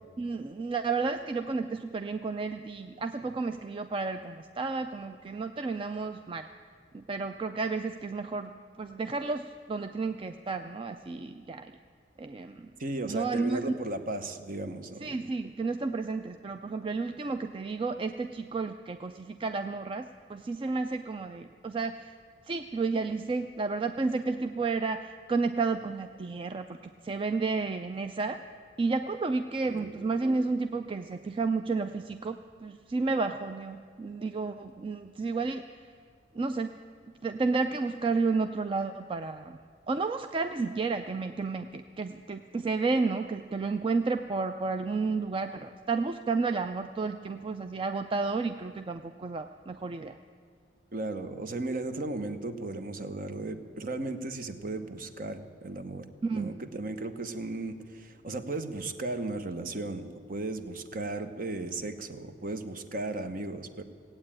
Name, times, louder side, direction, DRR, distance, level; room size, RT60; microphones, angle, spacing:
voice 1, 0.2-6.5 6.9-8.5 8.8-11.7 12.2-12.7 13.0-13.8 15.0-22.1 22.5-26.8 27.0-28.4 28.8-35.6 36.3-36.8 37.2-39.6 39.9-50.2 56.2-56.5, right 4 dB, 30° right, 8 dB, 0.4 m, -31 dB
voice 2, 12.8-15.1 29.7-29.9 50.9-63.8, right 2 dB, 50° right, 8 dB, 0.9 m, -36 dB
17.0 x 8.7 x 8.8 m, 2.1 s
head